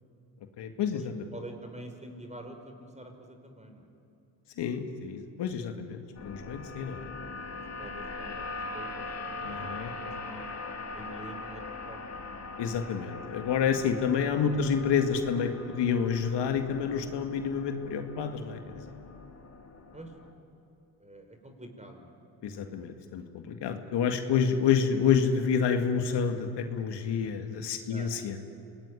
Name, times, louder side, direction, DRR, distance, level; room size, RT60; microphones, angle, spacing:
voice 1, 0.6-1.3 4.6-7.0 9.4-9.9 12.6-18.8 22.4-28.4, left 7 dB, 65° left, 5 dB, 2.2 m, -29 dB
voice 2, 1.3-3.9 7.5-8.4 8.7-12.2 14.4-14.7 19.9-20.1 21.0-22.1 24.9-25.0 27.9-28.1, right 1 dB, 15° right, 5 dB, 5.5 m, -47 dB
sound 1, 6.1-20.3, left 3 dB, 35° left, 3.0 m, -41 dB
27.0 x 19.5 x 10.0 m, 2.7 s
supercardioid pair, 65°, 45 cm